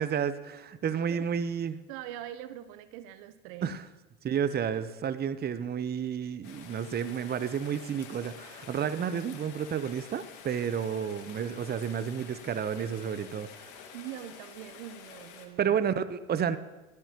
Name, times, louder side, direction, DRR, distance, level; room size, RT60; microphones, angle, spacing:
voice 1, 0.0-1.8 3.6-3.8 4.2-13.7 15.6-16.6, right 8 dB, 25° right, 13 dB, 0.8 m, -31 dB
voice 2, 1.9-3.8 13.9-15.8, right 12 dB, 60° right, 13 dB, 0.8 m, -43 dB
Rain, 6.4-15.5, left 7 dB, 60° left, 2.0 m, -49 dB
20.5 x 13.0 x 3.0 m, 1.1 s
hypercardioid pair, 70°, 35 cm